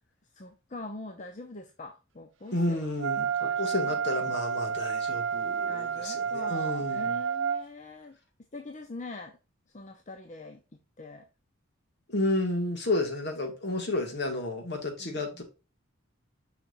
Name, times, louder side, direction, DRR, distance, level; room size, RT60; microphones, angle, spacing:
voice 1, 0.3-2.9 3.4-4.0 5.7-8.2 8.5-9.4 9.7-10.6 11.0-11.2 15.0-15.2, left 2 dB, 35° left, 0.7 m, -43 dB
voice 2, 2.5-7.2 12.1-15.4, left 2 dB, 55° left, 2.0 m, -31 dB
Wind instrument woodwind instrument, 3.0-7.6, right 7 dB, 65° right, 0.8 m, -30 dB
6.9 x 5.8 x 2.5 m
head